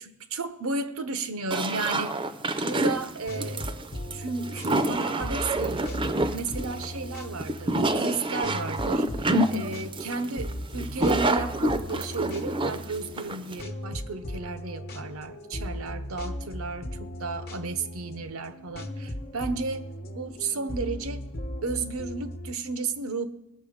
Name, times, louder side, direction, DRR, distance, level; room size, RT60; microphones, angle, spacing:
voice 1, 0.3-2.2 2.6-3.8 4.1-19.9 20.1-21.3 21.6-23.2, right 3 dB, 85° right, 11 dB, 0.8 m, -33 dB
sound 1, 1.5-13.6, right 2 dB, 25° right, 0.5 m, -27 dB
sound 2, 2.9-22.5, equal, 45° left, 0.9 m, -38 dB
19.0 x 6.9 x 5.1 m, 0.88 s
head